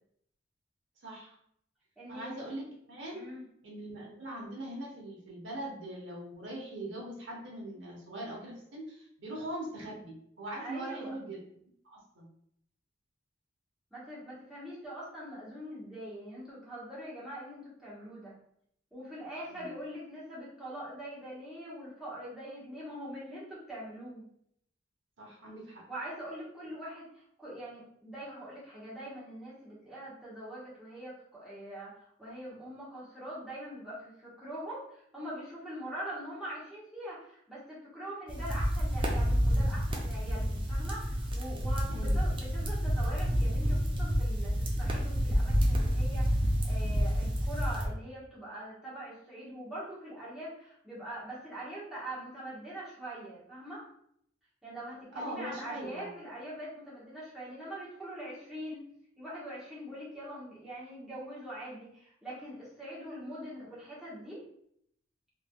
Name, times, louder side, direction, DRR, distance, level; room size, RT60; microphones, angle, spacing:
voice 1, 1.0-1.3 2.1-3.2 3.6-11.5 11.8-12.3 19.5-19.7 25.2-25.8 41.9-42.1 55.1-56.1, right 1 dB, 75° right, -2 dB, 0.9 m, -41 dB
voice 2, 2.0-2.3 3.1-3.4 10.6-11.2 13.9-18.3 18.9-24.2 25.9-53.8 54.6-58.9 59.2-64.4, right 1 dB, ahead, -9 dB, 1.1 m, -43 dB
sound 1, 38.3-47.9, equal, 25° right, 0.5 m, -29 dB
3.3 x 2.9 x 2.2 m, 0.70 s
head